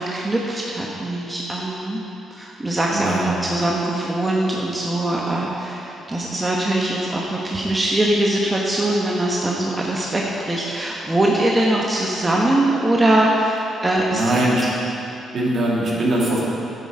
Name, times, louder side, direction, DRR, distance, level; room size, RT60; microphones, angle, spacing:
voice 1, 0.0-2.0 2.3-14.4, right 1 dB, 20° right, -3 dB, 1.1 m, -22 dB
voice 2, 2.9-3.5 14.1-14.6 15.3-16.4, right 1 dB, 55° right, -5 dB, 2.4 m, -21 dB
10.0 x 7.5 x 4.9 m, 2.8 s
cardioid pair, 90°, 0 cm